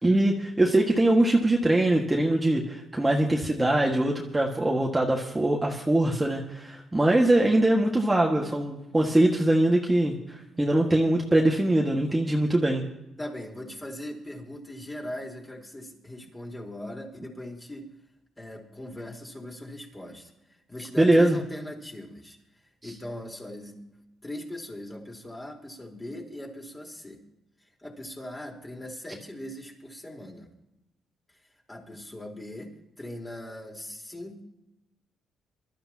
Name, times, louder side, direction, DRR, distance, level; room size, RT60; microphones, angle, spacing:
voice 1, 0.0-12.8 21.0-21.4, right 1 dB, 15° right, -1 dB, 1.8 m, -22 dB
voice 2, 13.2-17.9 18.4-22.4 22.6-23.8 24.2-27.2 27.6-30.5 31.3-31.4 31.7-34.4, left 1 dB, 15° left, 0 dB, 4.1 m, -40 dB
24.0 x 13.0 x 2.9 m, 0.90 s
cardioid pair, 90°, 0 cm